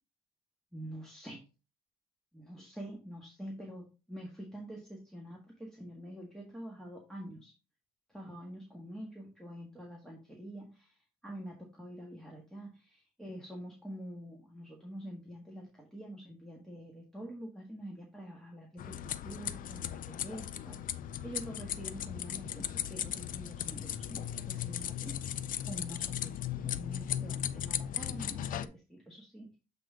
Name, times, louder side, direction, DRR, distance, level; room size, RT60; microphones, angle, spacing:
voice 1, 0.7-1.5 2.3-7.5 8.1-10.9 11.2-20.8 21.2-25.1 25.6-29.6, equal, 5° left, -2 dB, 1.6 m, -46 dB
sound 1, 18.8-28.7, left 10 dB, 55° left, 0.5 m, -37 dB
7.5 x 3.6 x 3.7 m, 0.31 s
cardioid pair, 110°, 17 cm